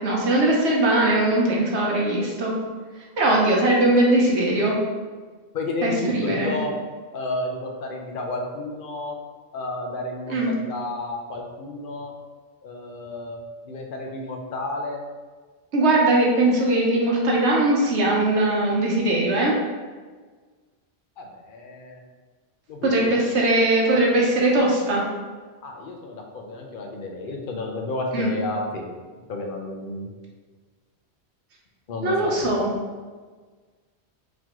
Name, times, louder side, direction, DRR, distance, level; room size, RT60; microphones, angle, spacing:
voice 1, 0.0-2.5 3.2-4.8 5.8-6.6 10.3-10.5 15.7-19.6 22.8-25.0 28.1-28.4 32.0-32.7, right 1 dB, 85° right, -2 dB, 1.1 m, -20 dB
voice 2, 5.5-6.8 7.1-9.1 9.5-12.1 12.6-13.4 13.6-15.0 21.2-22.0 22.7-23.3 25.6-28.9 29.3-30.1 31.9-32.5, left 2 dB, 60° left, 1 dB, 0.7 m, -31 dB
4.0 x 3.0 x 2.9 m, 1.4 s
omnidirectional pair, 1.1 m